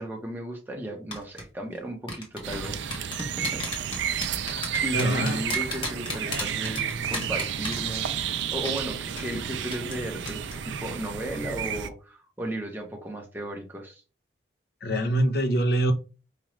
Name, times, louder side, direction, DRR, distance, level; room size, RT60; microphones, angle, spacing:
voice 1, 0.0-3.6 4.3-14.0, right 1 dB, 10° right, 0.7 m, -35 dB
sound 1, 1.1-1.4 2.1-8.3 8.6-8.8 9.2-9.3 9.7-10.0 10.3-10.5 10.8-11.0, left 2 dB, 30° left, 1.1 m, -33 dB
sound 2, 2.4-11.9, right 8 dB, 80° right, 0.4 m, -31 dB
voice 2, 4.9-5.4 14.8-15.9, right 1 dB, 55° left, 0.6 m, -24 dB
4.9 x 2.3 x 3.0 m
head